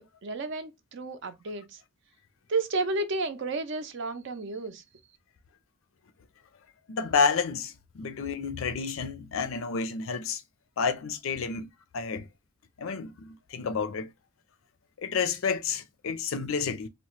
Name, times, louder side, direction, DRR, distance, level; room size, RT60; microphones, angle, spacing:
voice 1, 0.0-1.8 2.5-4.8, right 3 dB, 55° right, 0.5 m, -32 dB
voice 2, 6.9-10.4 10.8-12.3 12.8-14.1 15.0-16.9, left 5 dB, 70° left, 0.4 m, -30 dB
2.8 x 2.1 x 3.0 m
head